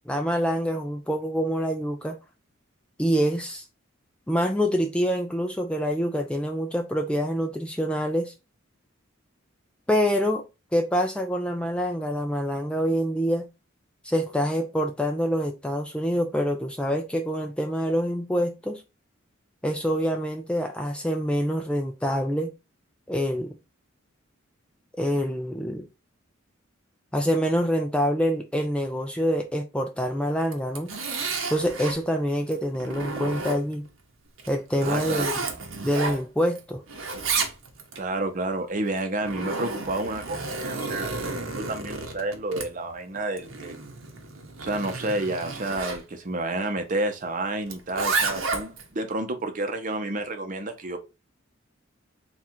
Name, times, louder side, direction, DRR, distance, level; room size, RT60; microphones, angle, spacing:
voice 1, 0.1-2.2 3.0-3.6 4.3-8.3 9.9-10.4 10.7-13.5 14.0-18.8 19.6-22.5 23.1-23.5 25.0-25.8 27.1-30.9 31.5-33.8 34.5-35.3 35.8-36.8, equal, 5° left, 0.3 m, -26 dB
Zipper (clothing), 30.4-32.0 32.5-33.9 34.4-36.6 36.9-38.0 38.9-46.0 47.7-48.9, right 3 dB, 75° right, 0.9 m, -31 dB
voice 2, 34.8-35.3 37.9-43.9 44.6-51.0, right 2 dB, 40° right, 0.7 m, -30 dB
3.7 x 2.4 x 4.3 m
head